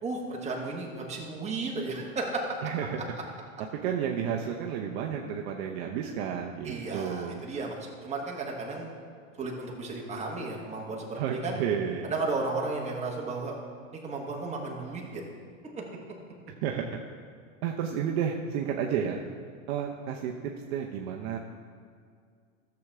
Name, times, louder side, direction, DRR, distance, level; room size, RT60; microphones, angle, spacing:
voice 1, 0.0-2.6 6.6-7.8 8.0-8.9 9.4-11.6 12.0-13.5 14.0-15.2, right 3 dB, 15° right, -2 dB, 1.7 m, -34 dB
voice 2, 2.6-3.0 3.8-7.4 11.2-12.1 16.6-17.0 17.6-19.2 19.7-20.3 20.7-21.4, right 8 dB, 50° right, 1 dB, 0.8 m, -31 dB
13.0 x 7.0 x 3.6 m, 2.1 s
hypercardioid pair, 120°, 41 cm